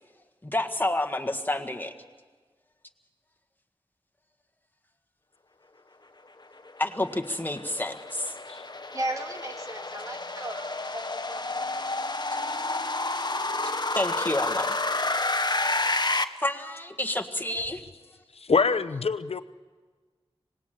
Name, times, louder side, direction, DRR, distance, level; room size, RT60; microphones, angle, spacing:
voice 1, 0.4-1.9 6.8-8.3 14.0-14.8 16.4-17.8, left 1 dB, 20° left, 5 dB, 1.7 m, -29 dB
sound 1, 6.7-16.2, left 2 dB, 45° left, 1.0 m, -30 dB
voice 2, 8.9-11.0 11.3-11.9, right 1 dB, 35° right, 3 dB, 2.3 m, -36 dB
voice 3, 18.3-19.4, left 4 dB, 85° left, 11 dB, 0.8 m, -25 dB
25.5 x 20.0 x 7.6 m, 1.4 s
wide cardioid pair, 70°, 10 cm